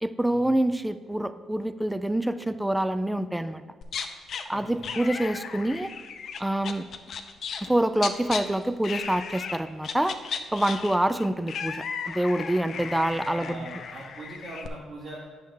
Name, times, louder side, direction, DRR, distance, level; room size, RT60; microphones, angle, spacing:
voice 1, 0.0-3.6 4.5-5.9 6.4-6.8 7.6-10.2 10.5-13.7, right 1 dB, 5° right, 12 dB, 0.3 m, -26 dB
sound 1, 3.8-4.4 4.8-8.4 8.8-9.6 9.8-14.7, left 6 dB, 60° left, 0.5 m, -35 dB
voice 2, 4.5-4.9 12.7-12.9 13.1-15.2, right 2 dB, 60° right, -6 dB, 1.8 m, -42 dB
8.4 x 6.3 x 3.5 m, 1.5 s
cardioid pair, 90°, 0 cm